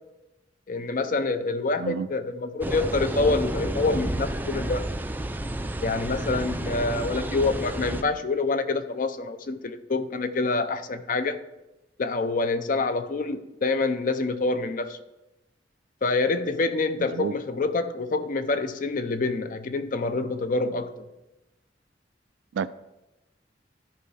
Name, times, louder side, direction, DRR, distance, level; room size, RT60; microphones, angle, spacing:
voice 1, 0.7-4.8 5.8-11.4 12.0-15.0 16.0-20.9, left 3 dB, 45° left, 0.5 m, -26 dB
voice 2, 1.8-2.1 17.1-17.3 22.5-22.7, right 7 dB, 90° right, 0.3 m, -29 dB
sound 1, 2.6-8.0, right 1 dB, 10° right, 0.4 m, -30 dB
13.5 x 5.4 x 3.3 m
head